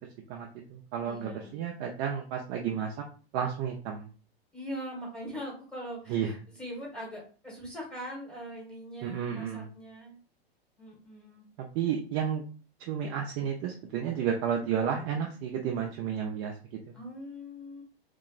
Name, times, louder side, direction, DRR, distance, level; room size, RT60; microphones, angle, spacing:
voice 1, 0.3-3.0 3.3-4.1 6.1-6.3 9.0-9.7 11.6-12.4 12.8-16.9, right 8 dB, 35° right, 2 dB, 0.4 m, -32 dB
voice 2, 1.0-1.5 4.5-10.2 10.8-11.5 16.9-17.8, equal, 5° left, -4 dB, 1.4 m, -41 dB
3.0 x 2.8 x 2.4 m, 0.38 s
hypercardioid pair, 105°, 31 cm